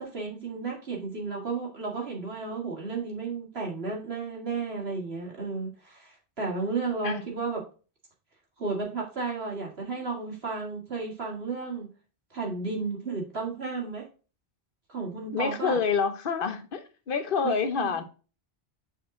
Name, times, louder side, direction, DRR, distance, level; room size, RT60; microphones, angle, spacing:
voice 1, 0.0-7.6 8.6-11.9 12.3-14.0 14.9-15.8 17.4-17.9, right 4 dB, 70° right, 2.3 m, -33 dB
voice 2, 15.3-18.0, left 5 dB, 55° left, 1.0 m, -27 dB
6.5 x 4.3 x 3.6 m
omnidirectional pair, 1.1 m